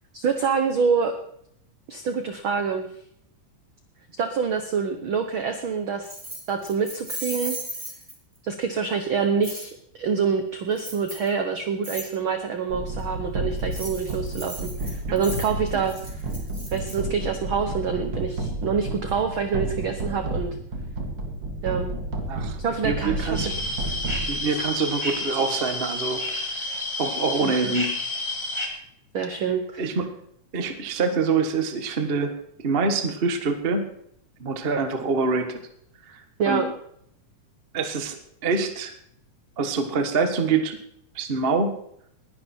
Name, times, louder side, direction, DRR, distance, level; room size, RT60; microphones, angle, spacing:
voice 1, 0.1-1.2 1.9-2.9 4.2-6.1 6.5-7.6 8.4-16.3 16.7-20.6 21.6-21.9 22.6-23.5 24.5-24.6 27.4-27.7 29.1-29.9 36.4-36.7, right 6 dB, 75° right, 7 dB, 1.1 m, -26 dB
Keys jangling, 6.0-8.4 9.4-9.7 10.8-11.3 11.8-12.1 13.6-17.0, right 1 dB, 10° right, 4.2 m, -36 dB
sound 1, 12.7-24.8, right 2 dB, 40° right, 2.4 m, -31 dB
voice 2, 22.8-23.5 24.3-26.5 27.0-27.9 29.8-30.1 30.5-33.8 34.4-35.6 36.1-36.2 36.4-36.6 37.7-38.2 38.4-38.9 39.6-40.8 41.1-41.8, right 4 dB, 60° right, 7 dB, 0.6 m, -25 dB
sound 2, 23.3-28.7, left 2 dB, 10° left, 1.9 m, -30 dB
20.0 x 11.0 x 4.4 m, 0.71 s
omnidirectional pair, 3.8 m